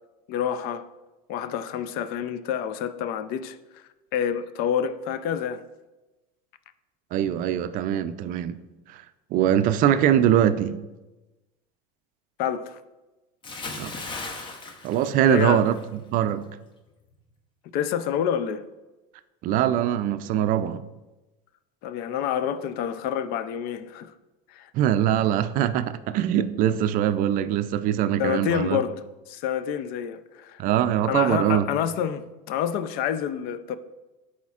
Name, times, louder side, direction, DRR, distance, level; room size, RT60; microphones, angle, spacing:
voice 1, 0.3-0.9 1.3-3.8 4.1-5.6 12.4-12.8 15.2-15.7 17.7-18.6 21.8-24.1 24.5-24.7 28.2-29.0 29.3-30.6 31.0-33.8, left 9 dB, 55° left, 0.5 m, -28 dB
voice 2, 7.1-8.6 8.9-9.0 9.3-10.8 13.8-13.9 14.8-16.5 19.4-20.8 24.7-28.8 30.6-31.7, right 10 dB, 50° right, 0.4 m, -22 dB
Bathtub (filling or washing) / Splash splatter, 13.4-15.9 16.2-16.5, left 3 dB, 25° left, 0.7 m, -37 dB
11.5 x 4.3 x 2.4 m
supercardioid pair, 120°, 19 cm